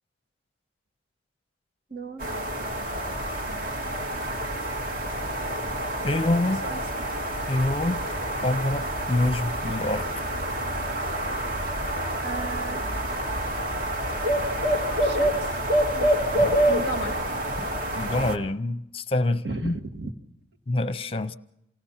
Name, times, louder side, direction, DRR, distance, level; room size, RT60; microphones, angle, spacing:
voice 1, 1.9-2.3 6.6-7.1 12.2-12.9 15.0-15.6 15.9-16.1 16.7-17.3 19.4-20.1, right 3 dB, 60° right, 2.1 m, -35 dB
Atlanta Barred Owl - Backyard, 2.2-18.4, right 1 dB, 45° right, 2.4 m, -27 dB
voice 2, 6.0-6.6 7.5-8.0 8.4-10.1 16.2-16.6 17.6-17.7 18.0-19.8 20.7-21.3, left 2 dB, 30° left, 0.7 m, -26 dB
28.5 x 19.0 x 5.7 m
head